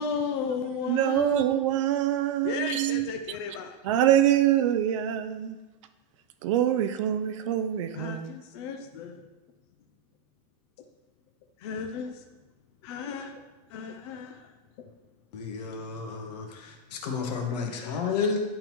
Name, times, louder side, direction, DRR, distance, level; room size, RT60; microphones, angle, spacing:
voice 1, 0.0-1.5 2.4-3.8 8.0-9.2 11.6-12.1 12.8-13.3 13.7-14.4 17.8-17.9, left 6 dB, 40° left, 0.5 m, -34 dB
voice 2, 0.9-3.4 3.8-5.6 6.4-8.3, right 11 dB, 50° right, 0.4 m, -25 dB
voice 3, 15.3-18.4, left 5 dB, 75° left, 1.2 m, -31 dB
10.0 x 3.8 x 3.0 m
supercardioid pair, 175°, 21 cm